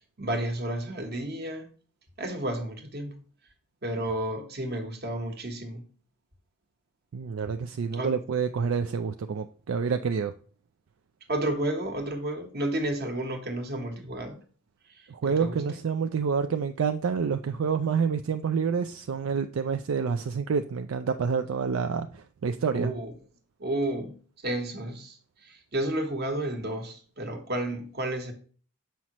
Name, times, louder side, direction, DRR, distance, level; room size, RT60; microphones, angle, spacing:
voice 1, 0.2-1.7 2.2-3.2 3.8-5.8 7.9-8.2 11.3-14.4 14.9-15.6 22.7-23.1 23.6-24.2 24.4-28.3, right 1 dB, 45° right, 1.2 m, -31 dB
voice 2, 7.1-10.3 15.1-22.9, right 6 dB, 70° right, 0.4 m, -28 dB
7.4 x 5.7 x 3.0 m
head